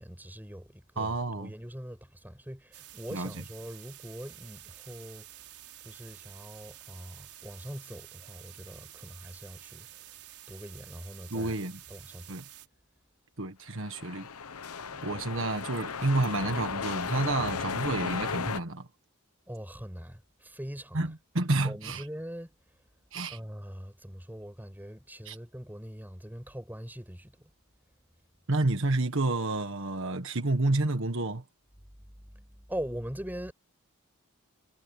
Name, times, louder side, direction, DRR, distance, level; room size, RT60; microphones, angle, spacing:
voice 1, 0.0-5.3 5.8-9.9 10.5-11.5 11.9-12.4 14.9-15.2 19.5-21.1 21.6-22.5 23.3-27.3 32.2-33.5, equal, 10° right, 7.2 m, -42 dB
voice 2, 1.0-1.5 3.1-3.4 11.3-11.8 12.3-12.4 13.4-14.3 15.0-18.9 20.9-22.1 23.1-23.4 25.2-25.4 28.5-31.4, right 2 dB, 60° right, 1.6 m, -30 dB
sound 1, 2.7-12.7, right 14 dB, 80° right, 5.3 m, -50 dB
sound 2, 13.7-18.6, left 5 dB, 80° left, 1.0 m, -35 dB
head